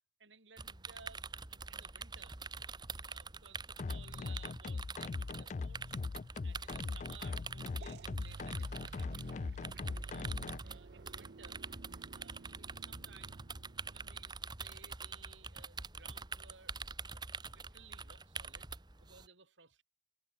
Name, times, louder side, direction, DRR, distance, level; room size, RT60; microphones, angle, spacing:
voice 1, 0.2-2.4 3.0-6.0 6.4-9.2 10.0-11.6 12.1-13.4 13.9-18.7 19.0-19.8, right 6 dB, 90° right, 4.7 m, -60 dB
sound 1, 0.6-19.3, right 4 dB, 25° right, 1.3 m, -46 dB
sound 2, 3.8-10.6, left 4 dB, 40° left, 0.3 m, -40 dB
sound 3, 7.8-14.4, right 4 dB, 60° right, 0.5 m, -51 dB
head